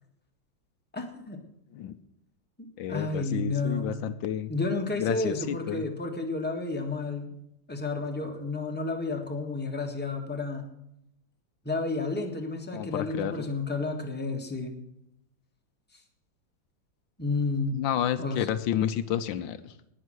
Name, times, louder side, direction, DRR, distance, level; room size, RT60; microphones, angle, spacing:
voice 1, 0.9-1.4 2.6-3.9 4.5-7.3 7.7-10.6 11.6-14.8 17.2-17.8 18.2-18.5, left 3 dB, 5° left, 2 dB, 1.5 m, -31 dB
voice 2, 2.8-4.5 5.0-5.8 12.7-13.5 17.7-19.7, left 10 dB, 85° left, 12 dB, 1.4 m, -30 dB
18.5 x 6.5 x 6.3 m, 0.80 s
omnidirectional pair, 2.1 m